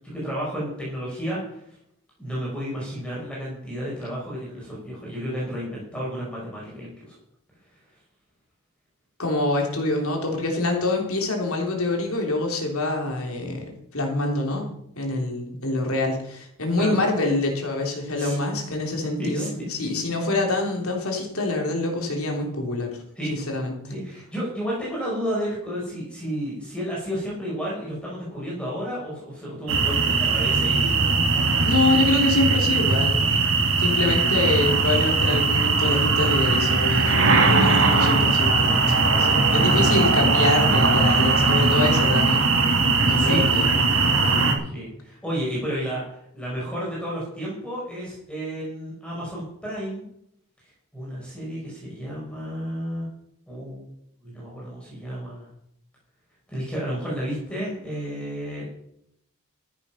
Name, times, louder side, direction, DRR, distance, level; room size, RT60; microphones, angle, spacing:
voice 1, 0.1-1.8 2.2-7.1 16.8-17.0 18.2-18.3 19.2-19.5 23.2-23.3 23.9-31.3 38.7-38.9 39.1-39.5 43.2-43.4 44.6-50.0 50.9-53.1 53.5-53.8 54.2-55.5 56.5-58.7, equal, 5° left, -5 dB, 5.5 m, -32 dB
voice 2, 9.2-13.6 13.9-23.0 23.3-23.9 31.6-33.2 33.8-38.7 39.2-42.4 43.1-43.7 44.2-44.4, left 2 dB, 80° left, 1 dB, 3.4 m, -25 dB
sound 1, 29.7-44.5, right 4 dB, 65° right, 2.1 m, -20 dB
13.5 x 8.7 x 5.8 m, 0.74 s
head